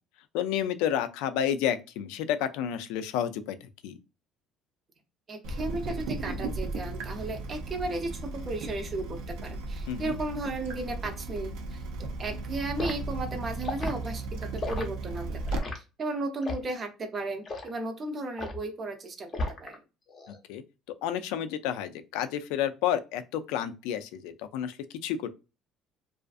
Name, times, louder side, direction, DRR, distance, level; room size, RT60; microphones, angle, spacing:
voice 1, 0.3-3.6 3.8-4.0 9.9-10.2 20.5-20.6 21.0-24.7 25.0-25.3, left 10 dB, 85° left, 0.3 m, -30 dB
voice 2, 5.3-9.1 9.4-19.3 19.6-19.8, right 2 dB, 30° right, 0.5 m, -35 dB
Water tap faucet / Drip, 5.4-15.6, right 2 dB, 80° right, 0.5 m, -36 dB
Liquid, 12.8-13.0 13.6-14.0 14.6-14.9 15.5-15.8 16.4-16.7 17.4-17.7 18.4-18.6 19.3-19.7 20.1-20.4, left 2 dB, 25° left, 0.6 m, -34 dB
2.4 x 2.4 x 2.3 m
cardioid pair, 145°, 0 cm